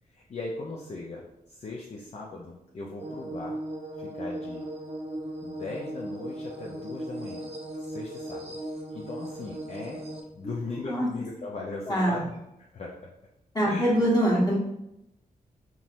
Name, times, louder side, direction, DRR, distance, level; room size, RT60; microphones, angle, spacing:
voice 1, 0.1-3.6 4.0-4.6 5.4-7.5 7.8-8.6 8.9-13.1 13.7-14.3, left 3 dB, 45° left, -3 dB, 0.6 m, -39 dB
sound 1, 3.0-10.2, right 1 dB, 40° right, 0.7 m, -37 dB
voice 2, 11.9-12.2 13.5-14.6, equal, 25° left, -4 dB, 1.4 m, -23 dB
3.8 x 2.9 x 2.6 m, 0.86 s
cardioid pair, 65°, 15 cm